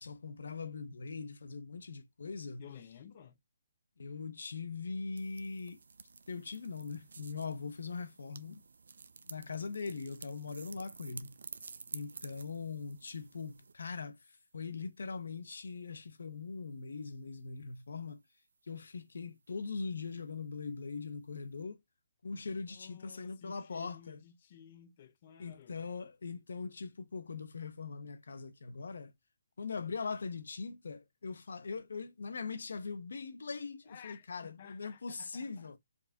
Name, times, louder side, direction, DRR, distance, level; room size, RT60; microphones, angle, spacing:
voice 1, 0.0-2.7 4.0-5.8 6.3-8.6 9.3-11.3 11.9-14.2 14.5-18.2 18.7-21.8 22.2-24.2 25.4-29.1 29.6-35.8, left 4 dB, 85° left, 0.9 m, -41 dB
voice 2, 2.6-3.4 22.7-25.8 33.8-35.7, left 8 dB, 30° left, 0.6 m, -54 dB
sound 1, 5.2-13.7, right 4 dB, 80° right, 0.6 m, -51 dB
4.7 x 2.9 x 2.7 m
hypercardioid pair, 175°, 0 cm